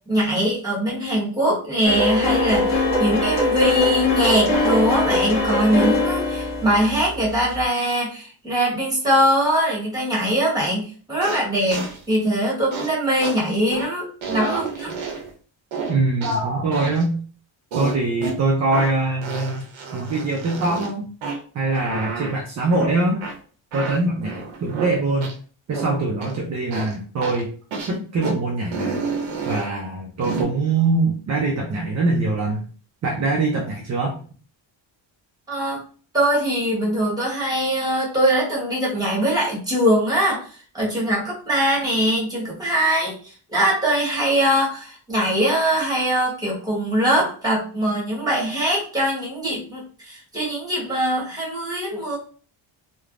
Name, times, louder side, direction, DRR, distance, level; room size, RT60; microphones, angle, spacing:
voice 1, 0.1-14.9 35.5-35.8 36.1-52.2, right 1 dB, 10° right, -5 dB, 1.2 m, -22 dB
sound 1, 1.8-7.6, left 2 dB, 45° left, 1.3 m, -21 dB
sound 2, 11.2-11.4 11.7-12.0 12.7-12.9 13.2-13.4 13.7-13.9 14.2-15.3 15.7-16.4 16.7-17.0 17.7-18.4 18.7-18.9 19.2-20.9 21.2-21.4 21.7-22.3 22.7-22.9 23.2-23.3 23.7-24.9 25.2-25.3 25.7-25.9 26.2-26.4 26.7-26.9 27.2-27.4 27.7-27.9 28.2-28.3 28.7-29.7 30.2-30.4, right 4 dB, 85° right, 0.8 m, -30 dB
voice 2, 15.9-17.2 17.7-19.6 19.9-21.1 21.5-23.2 23.7-25.3 25.7-27.5 27.9-29.0 29.5-32.6 33.0-34.2, right 2 dB, 40° right, 0 dB, 0.4 m, -23 dB
3.2 x 2.1 x 2.4 m, 0.41 s
cardioid pair, 145°, 46 cm